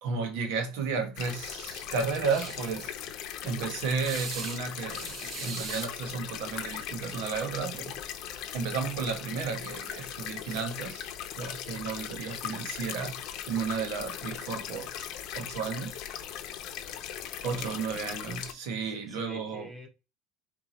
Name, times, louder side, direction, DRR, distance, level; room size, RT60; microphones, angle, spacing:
voice 1, 0.0-2.9 3.4-8.0 8.5-11.1 11.4-13.2 13.5-15.1 15.3-16.0 17.4-19.7, right 5 dB, 80° right, 1.2 m, -33 dB
sound 1, 1.2-18.5, left 10 dB, 50° left, 0.7 m, -39 dB
sound 2, 2.3-2.6 4.0-4.6 4.9-5.9 7.3-7.4 7.7-7.9 10.4-10.6, right 5 dB, 35° right, 0.7 m, -40 dB
voice 2, 17.5-17.9 18.9-19.9, right 1 dB, 5° right, 1.0 m, -46 dB
4.7 x 2.4 x 4.2 m
cardioid pair, 170°, 0 cm